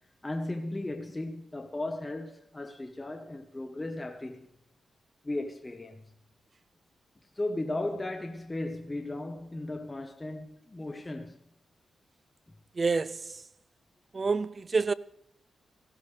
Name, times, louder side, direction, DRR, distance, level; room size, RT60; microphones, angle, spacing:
voice 1, 0.2-4.5 5.2-6.0 7.3-11.4, left 2 dB, 20° left, 1.2 m, -36 dB
voice 2, 12.7-13.4 14.1-14.9, right 4 dB, 40° right, 0.5 m, -28 dB
18.5 x 16.5 x 3.4 m
cardioid pair, 90°, 0 cm